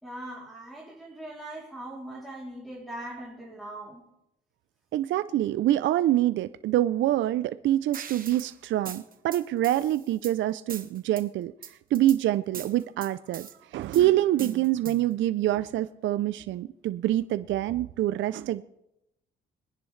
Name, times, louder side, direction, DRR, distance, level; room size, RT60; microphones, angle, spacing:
voice 1, 0.0-4.0, right 1 dB, ahead, -6 dB, 3.2 m, -40 dB
voice 2, 4.9-11.5 11.9-18.6, right 13 dB, 70° right, 13 dB, 0.5 m, -26 dB
sound 1, 7.9-8.5 8.9-10.3 10.7-11.2 11.6-12.2 12.5-13.5 13.9-15.1, right 7 dB, 45° right, 1.2 m, -41 dB
22.0 x 10.0 x 3.2 m, 0.86 s
cardioid pair, 90°, 20 cm